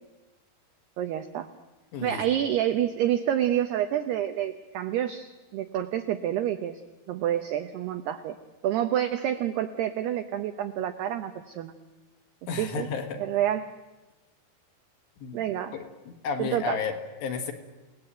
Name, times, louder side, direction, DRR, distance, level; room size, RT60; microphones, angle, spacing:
voice 1, 1.0-1.5 2.0-6.8 7.1-8.4 8.6-11.7 12.5-12.9 13.2-13.7 15.3-15.7 16.4-16.8, right 11 dB, 80° right, 8 dB, 2.3 m, -28 dB
voice 2, 1.9-2.2 12.5-13.2 15.2-15.4 15.7-17.5, left 6 dB, 65° left, 5 dB, 3.9 m, -32 dB
29.5 x 18.5 x 9.0 m, 1.1 s
omnidirectional pair, 5.9 m